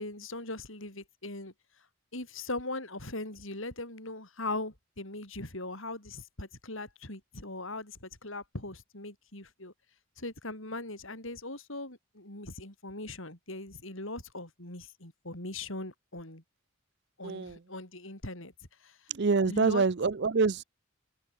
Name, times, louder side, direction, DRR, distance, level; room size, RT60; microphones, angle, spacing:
voice 1, 0.0-1.5 2.1-9.7 10.2-16.4 17.2-18.5 18.8-19.1 19.5-19.9, left 2 dB, 65° left, 7.0 m, -40 dB
voice 2, 17.2-17.6 19.1-20.6, right 4 dB, 50° right, 0.6 m, -26 dB
open air
head